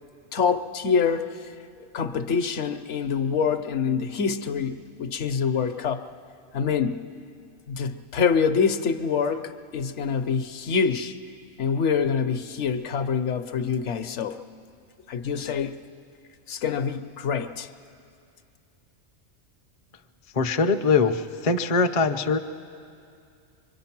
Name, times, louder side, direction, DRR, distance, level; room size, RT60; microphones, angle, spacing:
voice 1, 0.3-1.4 1.9-6.0 6.5-7.0 7.7-11.2 11.6-14.4 15.1-15.8 16.5-17.7, left 6 dB, 65° left, 8 dB, 1.0 m, -25 dB
voice 2, 20.3-22.4, left 4 dB, 40° left, 6 dB, 0.5 m, -22 dB
24.5 x 23.5 x 5.9 m, 2.4 s
omnidirectional pair, 1.4 m